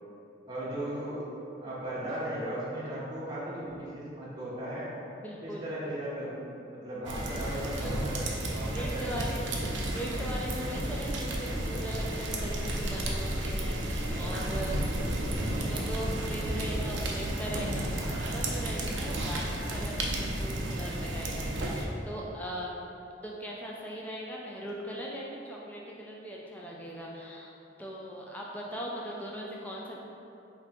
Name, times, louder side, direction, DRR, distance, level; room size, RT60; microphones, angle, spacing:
voice 1, 0.5-1.2 1.5-4.9 5.4-9.5, right 1 dB, 20° right, -9 dB, 0.8 m, -37 dB
voice 2, 5.2-5.6 7.8-8.0 8.7-9.4 9.9-23.0 23.2-27.5 27.8-30.0, equal, 10° left, -3 dB, 0.4 m, -40 dB
sound 1, 7.0-21.8, right 1 dB, 85° right, 0.5 m, -32 dB
3.2 x 2.7 x 4.1 m, 2.8 s
head